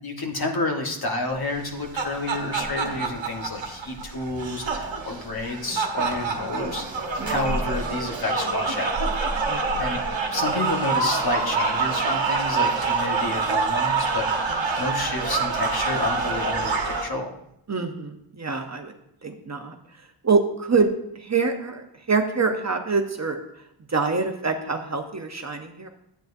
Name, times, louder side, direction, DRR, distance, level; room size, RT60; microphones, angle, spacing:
voice 1, 0.0-6.8 7.3-8.9 9.8-10.0 10.3-17.4, left 2 dB, 45° left, 1 dB, 1.5 m, -30 dB
sound 1, 1.6-17.0, right 4 dB, 60° right, 1.2 m, -26 dB
voice 2, 17.7-18.9 19.2-19.8 20.2-20.9 21.1-23.4 23.9-25.9, right 4 dB, 35° right, 5 dB, 0.9 m, -25 dB
11.5 x 9.1 x 2.7 m, 0.78 s
wide cardioid pair, 105°, 50 cm